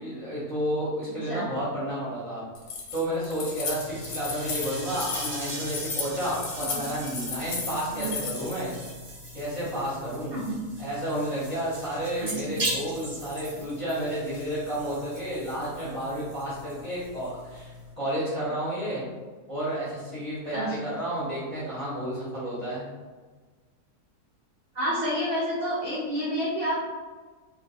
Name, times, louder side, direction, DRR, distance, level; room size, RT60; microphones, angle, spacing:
voice 1, 0.0-2.4 2.9-8.7 9.3-10.3 10.8-19.0 19.5-22.9, equal, 35° left, -11 dB, 0.6 m, -31 dB
Keys jangling, 2.5-8.6, left 4 dB, 85° left, 1.2 m, -34 dB
sound 1, 3.7-17.9, right 1 dB, 25° right, 0.9 m, -39 dB
voice 2, 12.2-12.6 20.5-20.8 24.7-26.8, equal, 60° right, -8 dB, 0.6 m, -29 dB
2.5 x 2.1 x 2.7 m, 1.4 s
omnidirectional pair, 1.6 m